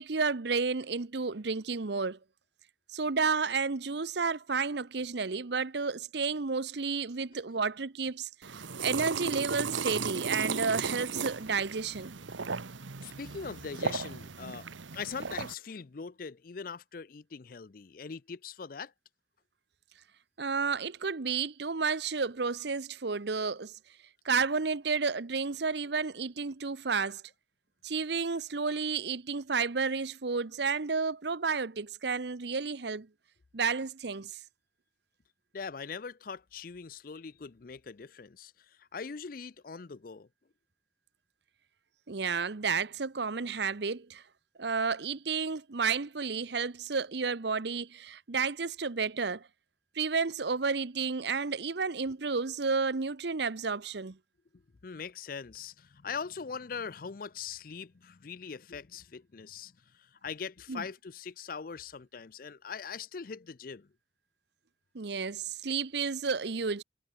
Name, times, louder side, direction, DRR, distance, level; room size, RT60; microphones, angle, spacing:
voice 1, 0.0-2.2 2.9-12.2 20.4-23.8 24.2-27.2 27.8-33.1 33.5-34.4 42.1-44.2 44.6-49.5 49.9-54.2 60.7-60.8 64.9-66.8, right 5 dB, 65° right, 0.8 m, -31 dB
sound 1, 8.4-15.5, right 5 dB, 85° right, 1.1 m, -36 dB
voice 2, 13.0-14.7 14.9-18.9 35.5-40.3 54.5-63.9, left 5 dB, 50° left, 0.5 m, -41 dB
head